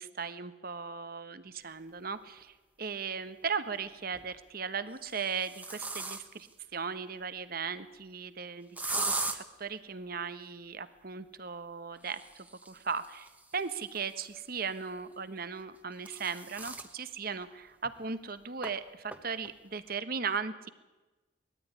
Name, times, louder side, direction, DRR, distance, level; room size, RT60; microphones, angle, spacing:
voice 1, 0.0-6.5 6.7-8.7 9.0-12.2 12.7-13.3 13.5-20.7, right 5 dB, 50° right, 12 dB, 1.1 m, -37 dB
sound 1, 2.4-2.5 3.9-4.3 4.9-6.5 8.8-9.4 12.0-14.6 15.6-16.9 17.4-17.5 17.8-17.9 18.6-18.7 19.1-19.5, right 3 dB, 10° right, 1.2 m, -39 dB
20.0 x 13.5 x 9.5 m, 1.1 s
head